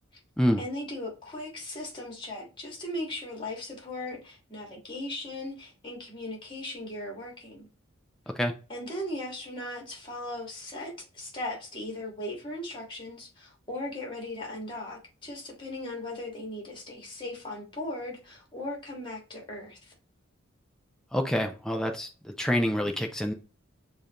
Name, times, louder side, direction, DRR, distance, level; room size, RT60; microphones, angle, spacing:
voice 1, 0.6-7.7 8.7-19.9, left 1 dB, 25° left, 1.7 m, -38 dB
voice 2, 21.1-23.3, equal, 5° left, 0.5 m, -27 dB
7.0 x 2.6 x 2.9 m
head